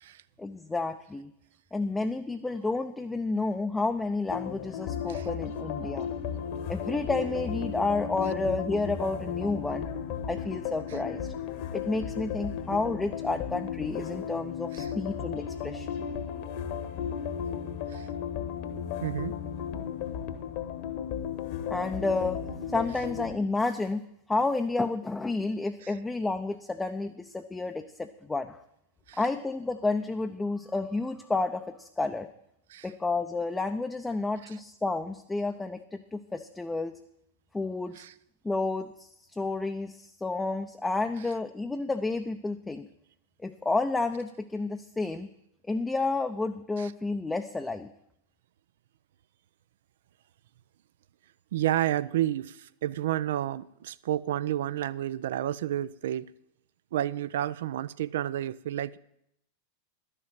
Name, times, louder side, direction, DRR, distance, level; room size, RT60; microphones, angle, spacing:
voice 1, 0.4-1.3 1.7-6.1 6.7-9.9 10.3-11.3 11.7-15.9 21.7-22.4 22.7-24.0 24.3-28.6 29.2-32.3 32.8-37.0 37.5-38.0 38.4-42.9 43.4-45.3 45.7-47.9, left 3 dB, 10° left, 0.6 m, -30 dB
sound 1, 4.3-23.3, left 8 dB, 45° left, 1.3 m, -35 dB
voice 2, 19.0-19.4 25.8-25.9 29.1-29.2 32.7-32.9 38.0-38.1 46.8-46.9 51.5-56.3 56.9-59.0, right 12 dB, 60° right, 0.4 m, -30 dB
12.0 x 6.6 x 8.9 m
figure-of-eight pair, 90°, 0 cm